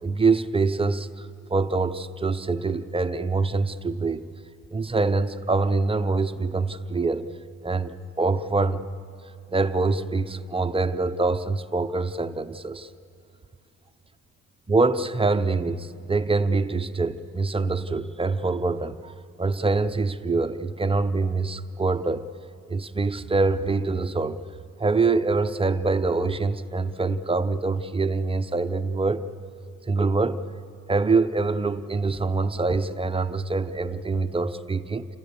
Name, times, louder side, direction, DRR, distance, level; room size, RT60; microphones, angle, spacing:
voice 1, 0.0-4.3 4.7-7.3 7.6-8.8 9.5-12.9 14.7-19.1 19.4-22.3 22.7-24.4 24.8-29.3 29.9-30.4 30.9-35.1, right 3 dB, 20° right, 10 dB, 0.7 m, -25 dB
29.0 x 14.5 x 7.0 m, 2.5 s
cardioid pair, 90°, 30 cm